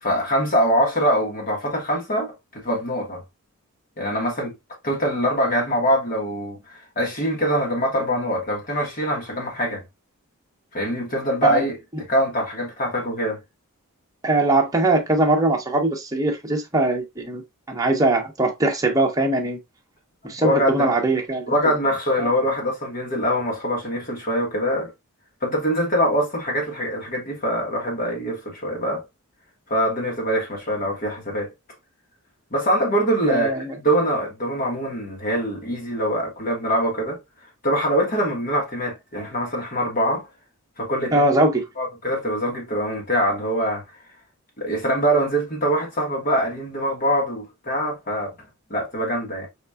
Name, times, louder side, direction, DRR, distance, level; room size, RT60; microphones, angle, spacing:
voice 1, 0.0-3.2 4.0-4.5 4.8-9.8 10.7-11.8 12.1-13.4 20.2-20.9 21.5-24.9 25.4-29.0 29.7-31.5 32.5-37.2 37.6-40.3 40.8-41.3 41.8-43.8 44.6-48.3 48.7-49.5, equal, 40° left, 1.4 m, -23 dB
voice 2, 14.2-19.6 20.2-21.7 22.2-22.3 33.2-33.7 41.1-41.6, right 2 dB, 15° right, 1.0 m, -21 dB
5.0 x 4.1 x 2.3 m
head